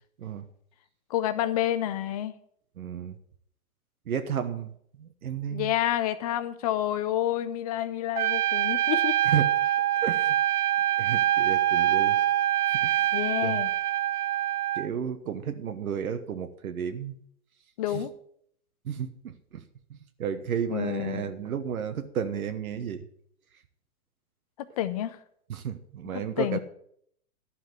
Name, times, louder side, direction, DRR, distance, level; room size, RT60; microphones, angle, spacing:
voice 1, 1.1-2.3 5.5-9.2 13.1-13.7 17.8-18.1 20.7-21.3 24.6-25.2 26.1-26.6, left 12 dB, 25° left, 0.6 m, -29 dB
voice 2, 2.8-3.2 4.1-4.7 5.0-5.7 9.2-9.5 10.0-10.4 11.0-12.2 12.8-13.1 13.4-13.6 14.7-17.1 17.9-18.0 18.8-19.6 19.9-23.1 25.5-26.6, right 8 dB, 70° right, 1.2 m, -32 dB
Trumpet, 8.2-14.9, right 12 dB, 90° right, 0.5 m, -25 dB
12.0 x 5.8 x 8.0 m
hypercardioid pair, 145°, 44 cm